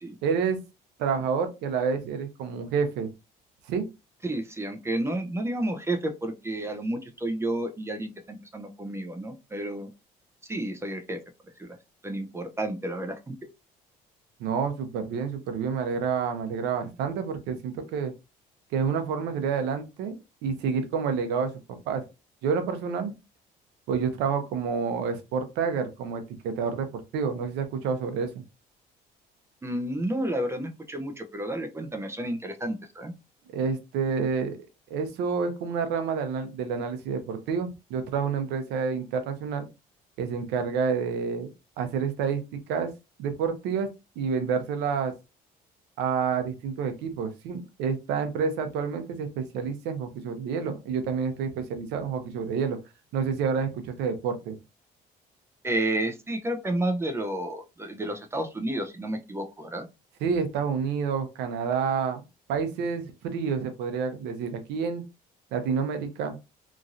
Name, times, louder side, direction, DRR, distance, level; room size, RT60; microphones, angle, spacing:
voice 1, 0.2-0.6 1.0-3.1 3.7-3.8 14.4-18.1 18.7-20.1 20.4-21.5 21.9-22.0 22.4-23.1 23.9-28.4 33.5-34.6 34.9-39.7 40.2-41.5 41.8-42.9 43.2-43.9 44.2-45.1 46.0-52.8 53.1-54.6 60.2-62.2 62.5-65.0 65.5-66.4, right 6 dB, 90° right, 7 dB, 0.7 m, -28 dB
voice 2, 4.2-9.9 10.4-11.2 11.6-11.8 12.0-13.4 29.6-33.1 55.6-59.9, right 1 dB, 15° right, 6 dB, 0.5 m, -31 dB
3.0 x 2.5 x 2.4 m, 0.26 s
cardioid pair, 110°, 17 cm